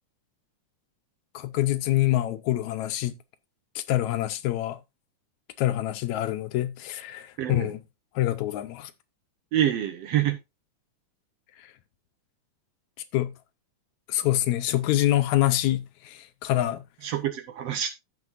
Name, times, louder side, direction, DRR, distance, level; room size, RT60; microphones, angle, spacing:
voice 1, 1.3-3.2 3.8-4.8 5.6-7.8 8.2-8.9 11.6-11.7 13.1-13.3 14.1-16.8, left 14 dB, 80° left, 1.9 m, -26 dB
voice 2, 7.4-7.7 9.5-10.4 17.0-17.9, right 11 dB, 65° right, 1.7 m, -26 dB
15.5 x 5.9 x 2.5 m
omnidirectional pair, 3.5 m